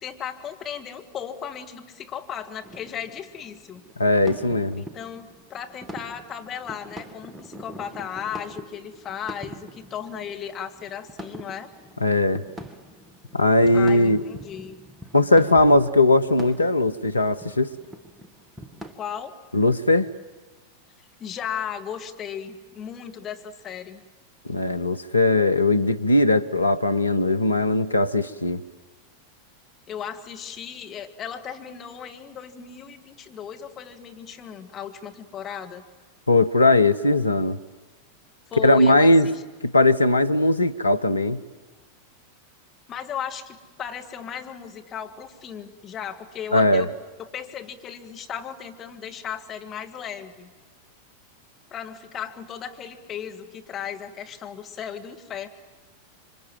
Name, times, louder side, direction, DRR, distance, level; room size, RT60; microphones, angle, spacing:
voice 1, 0.0-3.8 4.8-11.7 13.7-14.8 19.0-19.3 21.2-24.0 29.9-35.8 38.5-39.4 42.9-50.5 51.7-55.5, left 8 dB, 30° left, 4 dB, 2.3 m, -36 dB
sound 1, 2.6-18.9, equal, 10° right, 1.9 m, -43 dB
voice 2, 4.0-4.8 12.0-12.4 13.3-14.2 15.1-17.7 19.5-20.1 24.4-28.6 36.3-37.6 38.6-39.3 39.6-41.4 46.5-46.9, left 2 dB, 85° left, 9 dB, 0.9 m, -19 dB
27.5 x 25.0 x 7.7 m, 1.3 s
figure-of-eight pair, 90°, 0 cm